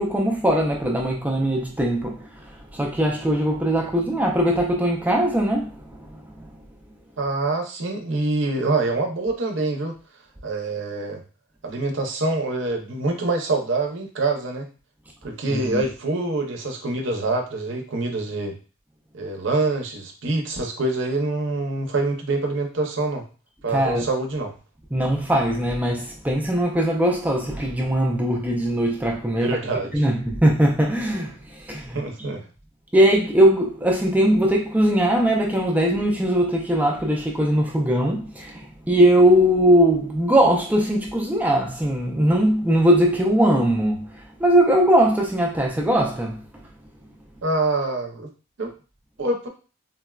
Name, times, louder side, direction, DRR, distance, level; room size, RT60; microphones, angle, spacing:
voice 1, 0.0-6.5 15.5-15.8 23.7-24.1 24.9-29.6 29.9-32.0 32.9-46.4, right 1 dB, 5° right, 0.3 m, -20 dB
voice 2, 7.2-9.9 10.4-11.2 11.6-14.7 15.2-18.6 19.1-23.2 23.6-24.5 29.4-30.0 31.9-32.4 47.4-48.3 48.6-48.7 49.2-49.5, right 2 dB, 60° right, 0.6 m, -25 dB
3.9 x 2.1 x 2.3 m
head